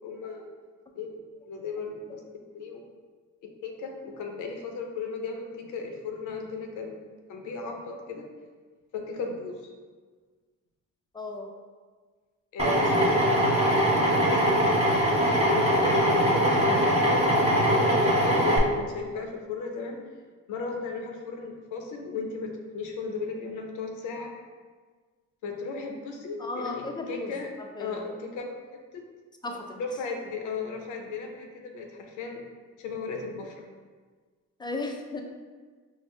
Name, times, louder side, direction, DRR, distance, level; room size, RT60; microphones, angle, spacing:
voice 1, 0.0-0.5 0.9-1.2 1.5-2.2 2.5-2.8 3.4-7.0 7.3-8.3 8.9-9.6 12.5-13.5 14.1-14.7 15.5-20.0 20.5-24.3 25.4-27.5 27.8-28.6 28.9-29.0 29.8-32.4 32.8-33.6, left 4 dB, 85° left, 2 dB, 0.6 m, -35 dB
voice 2, 11.1-11.5 26.4-28.0 29.4-29.8 34.6-35.2, left 2 dB, 15° left, 2 dB, 0.4 m, -35 dB
Drill, 12.6-18.6, equal, 20° right, 0.8 m, -22 dB
4.4 x 2.0 x 3.1 m, 1.5 s
cardioid pair, 90°, 30 cm